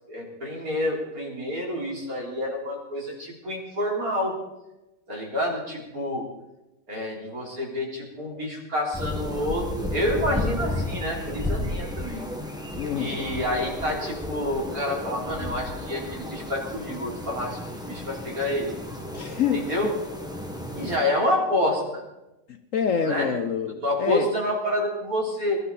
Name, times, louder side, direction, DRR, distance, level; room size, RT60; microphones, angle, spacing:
voice 1, 0.1-4.4 5.1-6.3 6.9-12.3 12.9-18.7 19.5-19.9 20.7-22.0 23.0-23.3 23.8-25.6, left 1 dB, 55° right, -2 dB, 4.1 m, -28 dB
sound 1, 8.9-21.0, left 1 dB, ahead, 1.5 m, -33 dB
voice 2, 12.8-13.2 19.1-19.9 22.5-24.3, left 7 dB, 55° left, 8 dB, 1.0 m, -27 dB
22.0 x 12.5 x 4.2 m, 0.98 s
omnidirectional pair, 1.9 m